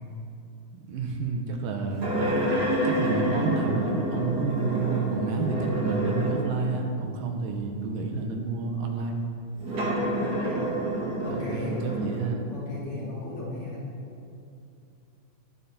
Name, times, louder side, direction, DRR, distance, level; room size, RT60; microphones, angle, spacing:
voice 1, 0.7-2.4 2.8-9.2 11.3-12.5, right 4 dB, 80° right, 2 dB, 2.7 m, -29 dB
Moving Chair, 2.0-6.7 7.4-7.5 9.6-12.2, right 1 dB, 40° right, 1.8 m, -28 dB
voice 2, 9.8-10.8 11.2-11.8 12.5-13.9, left 2 dB, 40° left, -7 dB, 3.1 m, -37 dB
19.5 x 6.6 x 4.2 m, 2.6 s
omnidirectional pair, 4.0 m